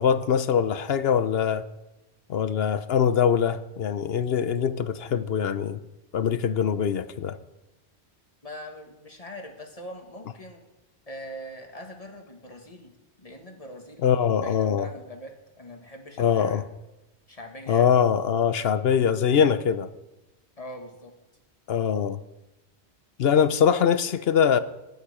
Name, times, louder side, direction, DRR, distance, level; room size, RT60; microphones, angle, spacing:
voice 1, 0.0-1.6 2.3-5.8 6.1-7.4 14.0-14.9 16.2-16.6 17.7-19.9 21.7-22.2 23.2-24.6, left 7 dB, 65° left, 0.9 m, -23 dB
voice 2, 8.4-10.6 11.1-12.9 13.2-14.1 14.4-16.6 17.3-18.0 20.6-21.1, left 1 dB, 35° left, 1.8 m, -42 dB
18.5 x 9.3 x 4.9 m
omnidirectional pair, 1.1 m